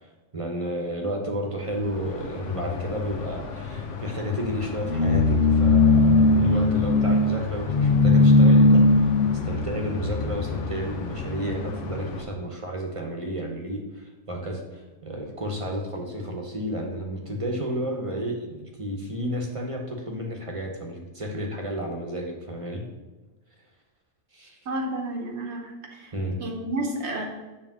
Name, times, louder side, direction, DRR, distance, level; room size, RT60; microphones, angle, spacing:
voice 1, 0.0-9.0 9.4-22.8 24.3-24.6 26.1-26.4, equal, 30° right, 1 dB, 0.9 m, -32 dB
sound 1, 1.8-12.2, left 3 dB, 85° left, 1.2 m, -21 dB
voice 2, 24.7-26.1 26.4-27.3, right 1 dB, 70° right, 2 dB, 1.1 m, -31 dB
7.1 x 3.4 x 5.9 m, 1.2 s
omnidirectional pair, 1.2 m